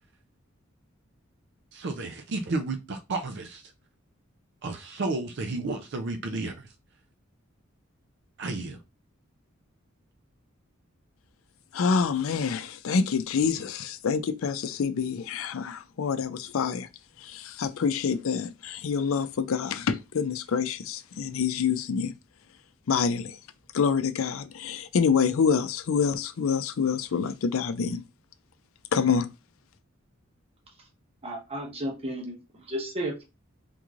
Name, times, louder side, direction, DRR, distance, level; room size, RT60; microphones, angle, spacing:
voice 1, 1.7-3.6 4.6-6.7 8.4-8.8, right 3 dB, 60° right, 0.5 m, -32 dB
voice 2, 11.7-16.9 17.6-22.1 22.9-23.3 23.7-28.0 28.9-29.3, left 6 dB, 80° left, 0.4 m, -26 dB
voice 3, 31.2-32.4 32.7-33.2, right 1 dB, 30° right, 0.9 m, -33 dB
3.6 x 3.0 x 2.4 m
head